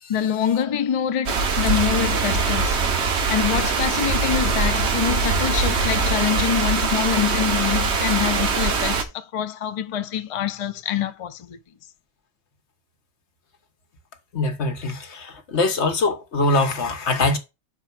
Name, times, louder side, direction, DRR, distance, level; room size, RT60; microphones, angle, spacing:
voice 1, 0.1-2.8 3.3-11.6, left 9 dB, 45° left, 0.5 m, -25 dB
sound 1, 1.3-9.0, right 4 dB, 80° right, 1.2 m, -22 dB
voice 2, 14.3-17.4, left 2 dB, 85° left, 1.4 m, -23 dB
5.7 x 4.6 x 5.9 m
omnidirectional pair, 1.1 m